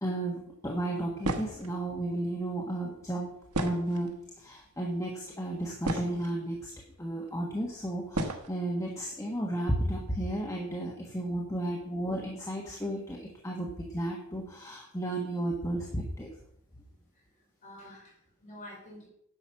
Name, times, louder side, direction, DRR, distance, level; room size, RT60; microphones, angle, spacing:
voice 1, 0.0-3.3 3.6-4.1 4.4-6.7 7.0-16.3, right 1 dB, 15° left, -1 dB, 1.4 m, -33 dB
sound 1, 1.2-1.7 3.5-4.2 5.1-5.2 5.6-6.4 7.3-7.4 8.1-8.5, right 2 dB, 85° right, 1.3 m, -33 dB
voice 2, 17.1-19.1, left 1 dB, 35° left, -2 dB, 5.0 m, -49 dB
10.5 x 7.0 x 5.8 m, 0.72 s
head